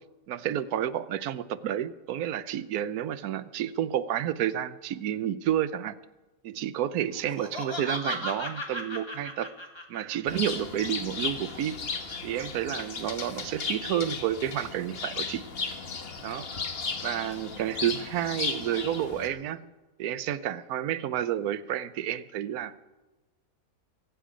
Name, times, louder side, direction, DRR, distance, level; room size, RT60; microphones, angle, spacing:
voice 1, 0.3-6.0 6.4-9.5 9.9-11.8 12.2-15.4 16.2-16.5 17.0-19.7 20.0-22.8, right 10 dB, 85° right, 15 dB, 1.2 m, -30 dB
Laughter, 7.1-10.4, left 1 dB, 20° left, 1.6 m, -36 dB
Bird, 10.3-19.3, left 4 dB, 45° left, 1.3 m, -35 dB
23.5 x 9.3 x 5.0 m, 1.1 s
omnidirectional pair, 1.5 m